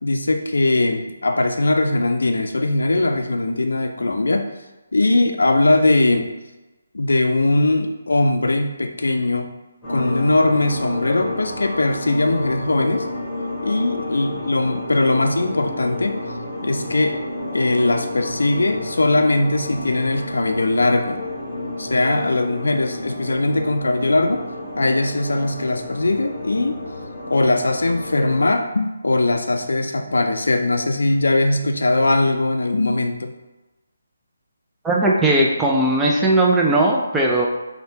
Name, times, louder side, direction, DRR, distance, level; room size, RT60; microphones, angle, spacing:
voice 1, 0.0-4.5 4.9-6.3 6.9-9.5 9.9-13.1 13.6-16.2 16.6-17.2 17.5-21.3 21.8-24.4 24.8-26.8 27.3-33.3, left 2 dB, 80° left, 6 dB, 0.3 m, -20 dB
sound 1, 9.8-28.5, left 2 dB, 15° left, 1.1 m, -31 dB
voice 2, 34.8-37.5, right 1 dB, 5° right, -3 dB, 0.3 m, -18 dB
3.2 x 2.2 x 2.7 m, 1.1 s
figure-of-eight pair, 155°, 0 cm